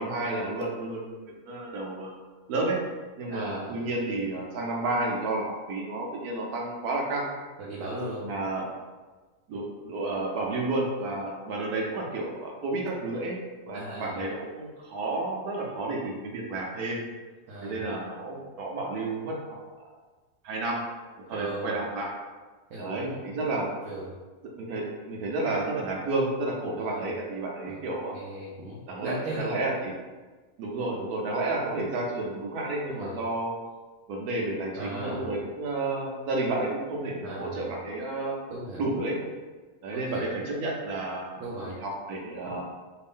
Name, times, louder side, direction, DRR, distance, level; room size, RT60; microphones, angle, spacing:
voice 1, 0.0-2.1 2.5-2.8 3.2-7.3 8.2-8.6 9.5-13.4 13.7-17.0 17.6-19.6 20.4-20.8 21.3-22.1 22.8-23.7 24.6-28.1 28.9-29.9 30.6-33.5 34.1-38.4 38.8-39.2 39.8-42.6, right 2 dB, 85° right, -1 dB, 1.2 m, -31 dB
voice 2, 3.3-3.9 7.6-8.2 13.7-14.2 17.5-17.9 21.3-21.8 22.7-23.2 23.9-24.2 26.8-27.1 27.7-27.8 28.1-29.5 32.9-33.2 34.8-35.4 37.2-37.8 38.5-38.8 39.9-40.2 41.4-41.8, right 1 dB, 65° right, -6 dB, 1.0 m, -37 dB
3.1 x 2.5 x 3.5 m, 1.3 s
omnidirectional pair, 1.5 m